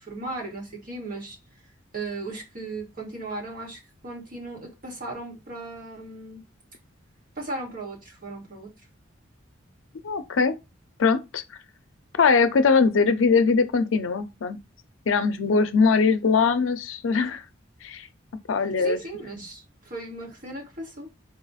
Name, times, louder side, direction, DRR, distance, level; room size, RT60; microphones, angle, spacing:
voice 1, 0.0-1.4 1.9-6.4 7.4-8.7 18.8-21.1, right 2 dB, 45° right, 1.6 m, -36 dB
voice 2, 10.0-10.6 11.0-11.4 12.2-14.6 15.1-17.4 17.8-18.1 18.5-19.0, left 5 dB, 85° left, 0.5 m, -21 dB
4.2 x 2.4 x 4.0 m
head